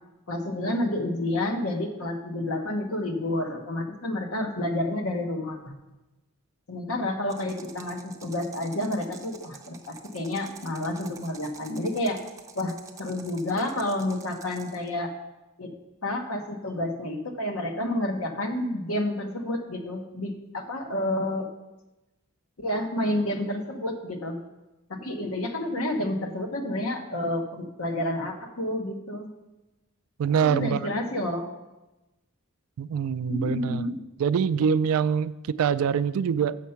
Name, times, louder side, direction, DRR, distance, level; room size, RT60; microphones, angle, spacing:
voice 1, 0.3-5.7 6.7-12.2 12.5-15.1 15.6-15.7 16.0-21.5 22.6-24.4 24.9-29.3 30.4-31.5 33.3-34.0, left 1 dB, 70° left, 5 dB, 1.1 m, -29 dB
sound 1, 7.3-14.9, right 5 dB, 15° right, 0.5 m, -48 dB
voice 2, 30.2-30.9 32.8-33.8 34.2-36.6, right 7 dB, 70° right, 14 dB, 0.3 m, -24 dB
7.2 x 6.5 x 5.7 m, 1.0 s
head